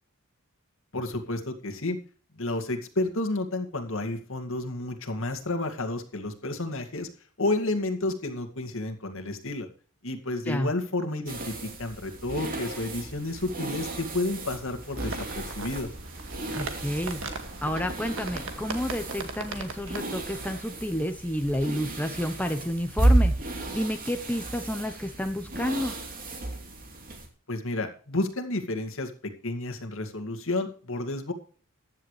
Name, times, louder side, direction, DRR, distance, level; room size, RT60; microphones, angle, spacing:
voice 1, 0.9-2.0 2.4-7.1 7.4-9.7 10.0-15.9 27.5-29.1 29.4-31.3, left 2 dB, 65° left, 5 dB, 2.2 m, -31 dB
sound 1, 11.3-27.3, right 1 dB, 40° right, 2.9 m, -32 dB
sound 2, 15.0-20.5, right 3 dB, 65° right, 2.1 m, -39 dB
voice 2, 16.6-17.2 17.6-25.9, equal, 5° left, 6 dB, 0.9 m, -30 dB
15.0 x 10.5 x 3.3 m, 0.41 s
head